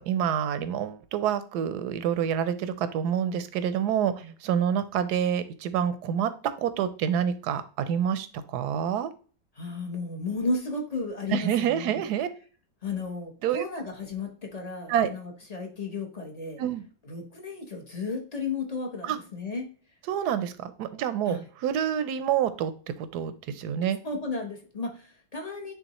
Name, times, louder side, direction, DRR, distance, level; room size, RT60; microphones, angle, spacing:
voice 1, 0.0-6.3 6.6-9.1 11.3-12.3 13.4-13.6 14.9-15.1 16.6-16.8 19.0-19.2 20.1-24.0, right 9 dB, 75° right, 12 dB, 1.1 m, -27 dB
voice 2, 9.6-12.0 12.8-16.6 17.1-19.7 21.3-21.4 24.0-25.7, left 3 dB, 30° left, 2 dB, 0.7 m, -34 dB
9.3 x 3.5 x 3.0 m, 0.40 s
omnidirectional pair, 1.9 m